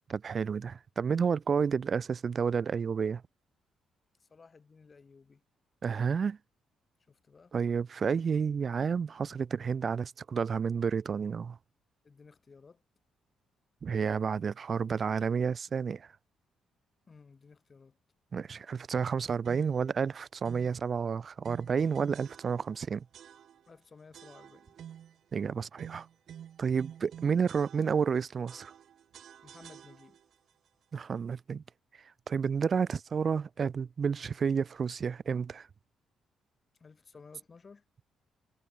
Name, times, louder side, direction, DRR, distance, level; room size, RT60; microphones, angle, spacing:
voice 1, 0.1-3.2 5.8-6.4 7.5-11.6 13.8-16.1 18.3-23.0 25.3-26.1 26.6-28.7 30.9-31.6 32.3-35.7, right 6 dB, 45° right, 0.6 m, -30 dB
voice 2, 4.2-5.4 7.1-7.6 12.0-12.8 17.1-18.0 23.7-24.8 29.4-30.2 36.8-37.8, left 4 dB, 35° left, 6.9 m, -55 dB
sound 1, 19.4-19.9 20.4-20.8 21.4-22.8 23.1-23.8 24.1-25.2 25.8-28.2 28.5-30.3, right 9 dB, 65° right, 7.6 m, -50 dB
cardioid pair, 90°, 0 cm